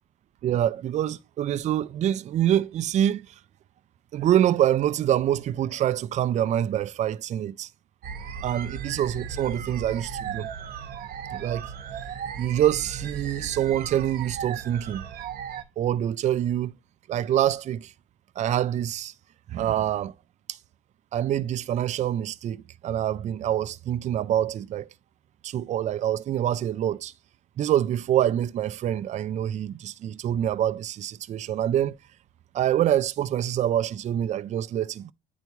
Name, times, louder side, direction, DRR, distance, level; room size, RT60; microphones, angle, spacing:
voice 1, 0.4-3.3 4.1-7.7 8.4-10.5 11.3-11.7 12.4-15.0 15.8-16.7 17.1-17.9 18.4-19.1 19.5-20.1 20.5-20.6 21.1-24.9 25.4-27.1 27.6-32.0 32.5-35.1, right 11 dB, 45° right, 0.4 m, -25 dB
sound 1, 8.0-15.6, right 7 dB, 65° right, 0.8 m, -36 dB
9.2 x 3.4 x 3.0 m
cardioid pair, 110°, 17 cm